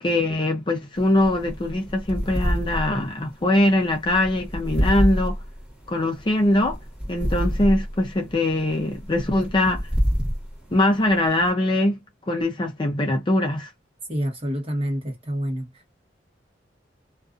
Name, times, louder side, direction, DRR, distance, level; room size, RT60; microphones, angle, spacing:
voice 1, 0.0-5.4 5.9-6.8 7.1-9.8 10.7-12.0 12.3-13.7, left 1 dB, 25° left, 0.4 m, -22 dB
sound 1, 1.0-11.5, equal, 5° right, 1.2 m, -28 dB
voice 2, 14.1-15.9, equal, 30° right, 1.1 m, -28 dB
2.4 x 2.4 x 2.4 m
head